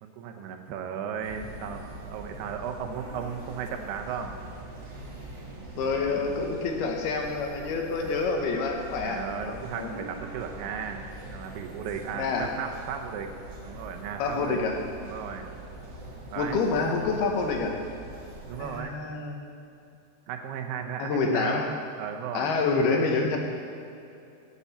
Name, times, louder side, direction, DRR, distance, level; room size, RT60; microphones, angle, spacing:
voice 1, 0.0-4.4 8.0-8.1 9.0-13.3 13.6-14.6 15.0-15.5 16.3-16.6 18.5-19.0 20.3-21.6 22.0-22.5, right 7 dB, 80° right, 5 dB, 2.9 m, -35 dB
sound 1, 1.2-18.8, right 2 dB, 60° right, 1.1 m, -43 dB
voice 2, 5.8-9.9 12.1-12.6 14.2-14.8 16.4-17.8 18.6-19.4 21.0-21.8 22.3-23.4, left 4 dB, 75° left, 2 dB, 3.0 m, -27 dB
17.0 x 8.3 x 4.3 m, 2.6 s
omnidirectional pair, 4.7 m